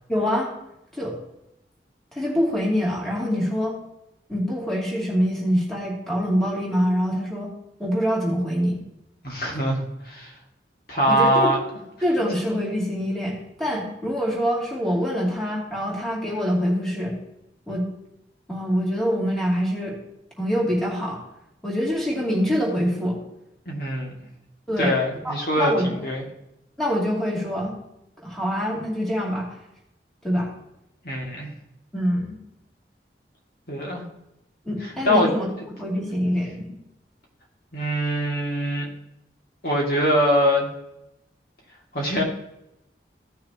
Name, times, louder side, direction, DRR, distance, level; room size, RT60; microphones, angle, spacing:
voice 1, 0.1-0.5 0.9-1.1 2.1-3.8 4.3-7.5 7.8-8.8 11.1-11.5 12.0-17.2 17.7-17.9 18.5-20.0 20.4-21.2 21.6-23.2 24.7-26.0 26.8-27.7 28.2-29.5 30.2-30.5 31.9-32.4 34.6-36.7, equal, ahead, -5 dB, 2.6 m, -25 dB
voice 2, 9.2-10.3 10.9-11.6 23.7-24.1 24.8-25.7 26.0-26.2 31.0-31.5 33.7-34.0 35.0-35.3 36.0-36.1 37.7-38.9 39.6-40.7 41.9-42.2, equal, 55° left, -1 dB, 2.2 m, -23 dB
16.0 x 6.5 x 2.9 m, 0.86 s
head